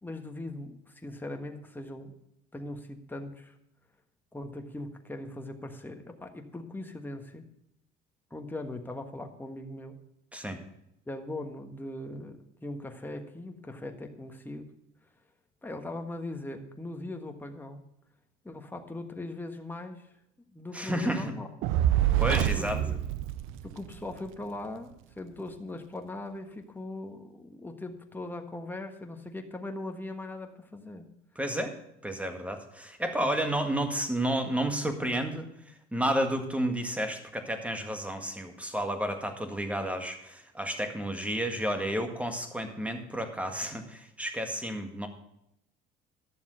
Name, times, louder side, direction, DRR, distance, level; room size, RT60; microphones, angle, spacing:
voice 1, 0.0-2.2 2.5-3.6 4.3-7.4 8.3-10.0 11.1-14.7 15.6-17.9 18.4-20.1 20.5-21.5 22.3-23.0 23.6-31.1 33.2-33.3, left 2 dB, 10° left, 4 dB, 1.5 m, -40 dB
voice 2, 20.7-21.4 22.2-22.8 31.4-31.8 32.0-45.1, right 1 dB, 5° right, 6 dB, 1.9 m, -31 dB
Fire, 21.6-24.1, right 12 dB, 70° right, 0.6 m, -26 dB
12.0 x 7.0 x 6.4 m, 0.78 s
supercardioid pair, 90°, 21 cm